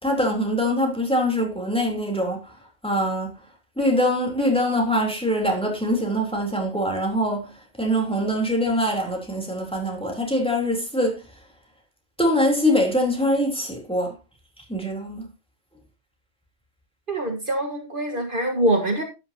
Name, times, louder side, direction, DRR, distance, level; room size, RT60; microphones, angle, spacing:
voice 1, 0.0-2.5 2.8-3.4 3.8-11.4 12.2-14.2 14.6-15.3, equal, 5° left, 3.5 m, -23 dB
voice 2, 17.1-19.0, right 1 dB, 50° right, 1.9 m, -24 dB
12.5 x 10.0 x 2.9 m
omnidirectional pair, 1.2 m